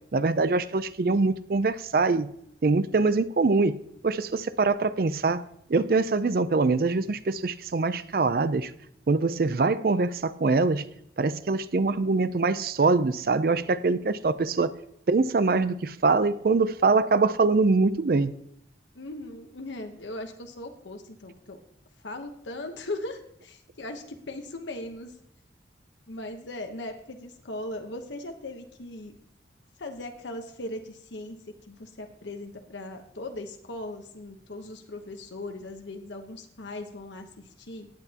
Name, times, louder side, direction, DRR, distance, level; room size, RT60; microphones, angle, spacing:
voice 1, 0.1-2.3 2.6-3.8 4.0-5.4 5.7-8.7 9.1-10.8 11.2-14.7 15.1-18.3, right 3 dB, 55° right, 0.4 m, -23 dB
voice 2, 9.4-10.0 18.9-21.6 22.0-25.2 26.1-29.1 29.8-37.9, left 2 dB, 90° left, 1.0 m, -39 dB
16.0 x 9.0 x 2.9 m
head